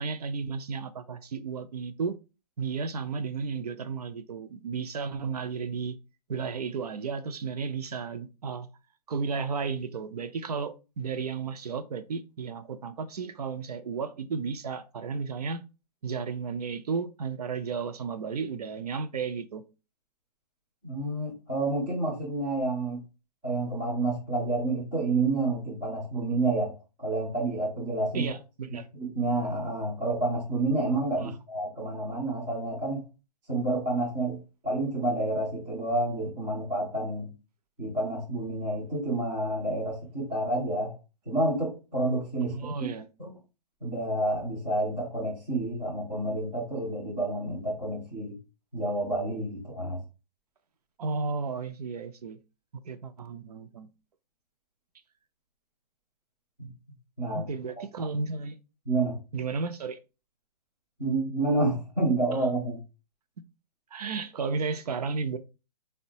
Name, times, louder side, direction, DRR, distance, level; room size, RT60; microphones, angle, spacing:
voice 1, 0.0-2.2 2.6-6.0 6.3-8.7 9.1-15.6 16.0-19.6 28.1-28.9 31.2-31.4 42.5-43.1 51.0-52.4 52.9-53.9 57.3-58.6 59.3-60.0 63.9-65.4, right 5 dB, 65° right, 0.5 m, -33 dB
voice 2, 20.8-23.0 23.4-28.3 29.0-33.0 33.5-37.3 37.8-41.0 41.3-42.7 43.2-43.3 43.8-48.3 48.7-50.0 56.6-56.7 57.2-57.5 58.9-59.2 61.0-62.8, right 2 dB, 5° right, 0.4 m, -29 dB
3.8 x 2.1 x 2.7 m
hypercardioid pair, 175°, 21 cm